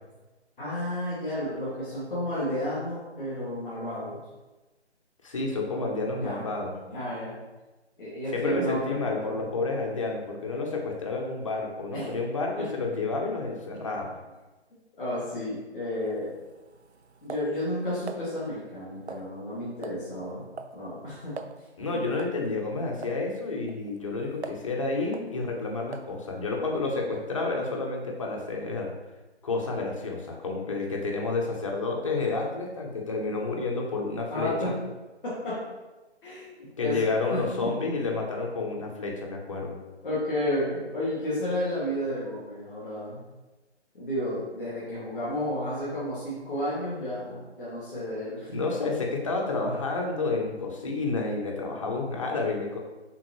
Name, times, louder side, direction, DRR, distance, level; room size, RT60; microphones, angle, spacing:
voice 1, 0.6-4.2 6.2-6.5 6.9-7.4 8.0-9.4 11.9-12.1 12.5-12.7 15.0-16.4 17.2-20.5 20.7-21.4 21.9-22.0 34.3-34.8 35.2-35.6 36.2-37.8 40.0-43.2 43.9-48.5, left 1 dB, ahead, -29 dB, 0.6 m, -32 dB
voice 2, 5.2-6.8 8.3-14.2 21.8-28.9 29.4-34.8 36.8-39.8 48.5-52.8, left 3 dB, 30° left, 0 dB, 0.8 m, -30 dB
sound 1, 16.0-18.2 19.1-19.5 19.8-20.1 20.3-20.8 21.1-21.2 21.4-21.6 22.2-22.4 23.0-23.2 23.7-24.7 25.1-25.3 25.9-26.2, right 5 dB, 70° right, 0.6 m, -42 dB
8.9 x 3.8 x 3.1 m, 1.1 s
figure-of-eight pair, 150°, 35 cm